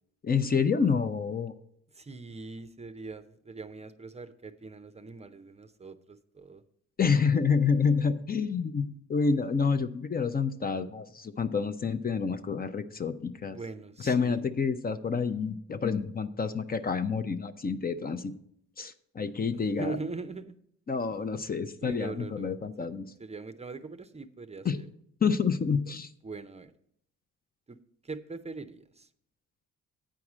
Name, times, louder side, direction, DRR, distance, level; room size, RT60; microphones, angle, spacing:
voice 1, 0.2-1.5 7.0-13.6 14.0-18.3 18.8-20.0 20.9-23.1 24.6-24.8 25.2-26.1, left 5 dB, 30° left, 10 dB, 0.6 m, -28 dB
voice 2, 1.9-6.6 13.5-14.4 19.5-20.5 21.8-22.5 22.8-22.9 23.2-24.9 26.2-26.7 27.7-27.8 28.0-29.1, right 3 dB, 20° right, 11 dB, 0.6 m, -41 dB
8.9 x 4.7 x 7.3 m, 0.69 s
cardioid pair, 90°, 30 cm